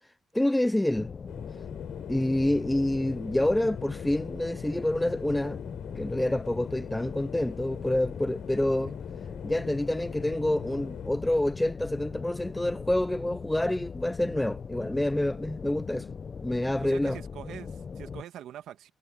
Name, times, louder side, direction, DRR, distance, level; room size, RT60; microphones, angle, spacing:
voice 1, 0.3-1.1 2.1-5.6 6.0-8.9 9.4-16.1 16.4-17.2, left 1 dB, 10° left, 0.3 m, -27 dB
sound 1, 0.9-18.2, left 5 dB, 40° left, 0.8 m, -40 dB
sound 2, 1.3-11.1, left 13 dB, 85° left, 3.9 m, -44 dB
voice 2, 16.8-18.9, right 11 dB, 80° right, 1.5 m, -44 dB
cardioid pair, 90°, 0 cm